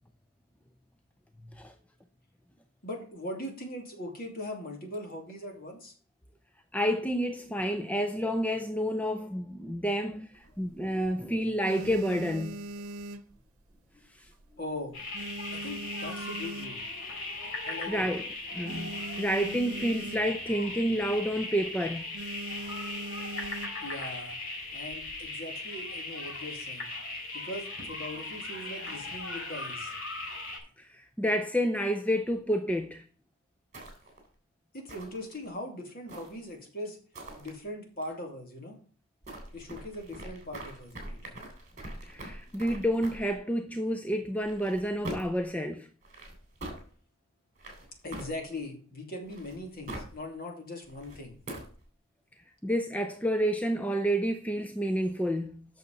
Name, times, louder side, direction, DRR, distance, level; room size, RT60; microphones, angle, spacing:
voice 1, 2.8-5.9 14.6-15.0 15.5-16.9 17.7-18.1 23.8-24.4 24.7-26.9 27.3-29.9 34.7-37.0 37.4-38.7 39.5-41.4 48.0-51.4, left 1 dB, 45° left, 2.7 m, -40 dB
voice 2, 6.7-12.6 14.2-14.3 17.6-18.3 18.5-22.0 30.8-33.0 42.0-45.9 52.6-55.7, equal, 5° left, 0.5 m, -29 dB
sound 1, 10.3-11.1 11.5-14.0 14.2-14.6 14.9-17.2 17.6-17.7 17.9-18.0 18.3-20.5 20.9-21.1 21.4-21.7 22.1-24.0 24.7-25.3, right 1 dB, 80° right, 0.9 m, -41 dB
sound 2, 14.9-30.6, left 2 dB, 65° left, 3.7 m, -38 dB
sound 3, 33.7-34.3 34.9-35.5 36.1-36.6 37.1-37.5 39.2-43.4 44.4-45.4 46.0-46.8 47.6-48.7 49.3-50.2 50.8-51.8, right 1 dB, 35° right, 3.3 m, -43 dB
8.5 x 6.4 x 5.2 m
head